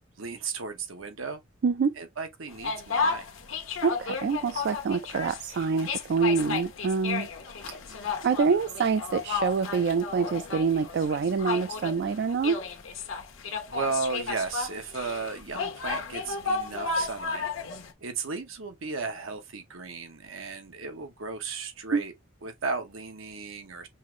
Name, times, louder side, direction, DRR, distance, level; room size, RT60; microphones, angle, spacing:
voice 1, 0.2-1.4 2.0-3.3 13.7-17.5 18.0-22.1 22.4-23.9, right 4 dB, 85° right, 1.0 m, -35 dB
voice 2, 1.6-2.0 3.8-7.3 8.2-12.6 21.9-22.0, right 5 dB, 55° right, 0.3 m, -26 dB
sound 1, 2.5-17.9, left 4 dB, 80° left, 1.0 m, -33 dB
5.5 x 2.5 x 3.0 m
head